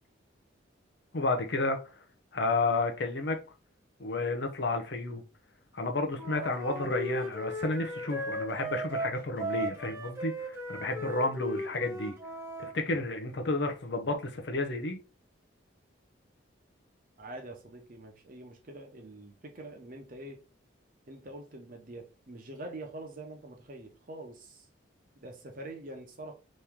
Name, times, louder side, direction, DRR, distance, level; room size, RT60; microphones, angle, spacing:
voice 1, 1.1-2.0 2.3-3.4 4.0-5.2 5.7-12.1 12.6-15.0, left 2 dB, 60° left, 0.6 m, -31 dB
Wind instrument woodwind instrument, 6.1-12.7, right 1 dB, 15° right, 0.9 m, -37 dB
voice 2, 17.2-20.4 21.1-24.7 25.1-26.3, right 2 dB, 45° right, 0.8 m, -45 dB
3.1 x 2.8 x 3.5 m
head